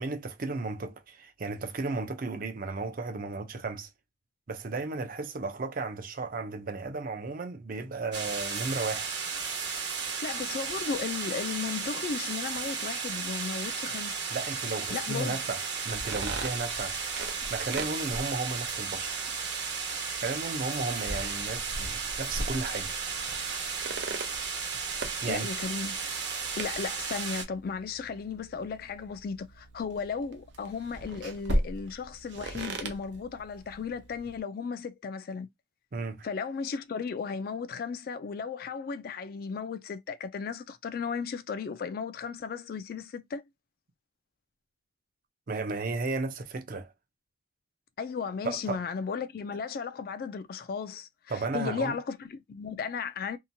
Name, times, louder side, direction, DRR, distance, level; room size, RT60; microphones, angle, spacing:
voice 1, 0.0-3.9 4.5-9.1 14.3-17.1 17.5-19.3 20.2-22.9 25.2-25.5 35.9-36.3 45.5-46.9 48.4-48.8 51.3-52.0, right 3 dB, 50° right, 0.5 m, -34 dB
sound 1, 8.1-27.4, right 5 dB, 70° right, 1.1 m, -34 dB
voice 2, 10.2-14.2 14.9-15.4 25.3-26.0 26.6-35.5 36.2-43.4 48.0-53.4, left 5 dB, 55° left, 0.3 m, -35 dB
sound 2, 15.9-34.4, right 1 dB, 85° right, 0.6 m, -39 dB
2.8 x 2.2 x 2.6 m
head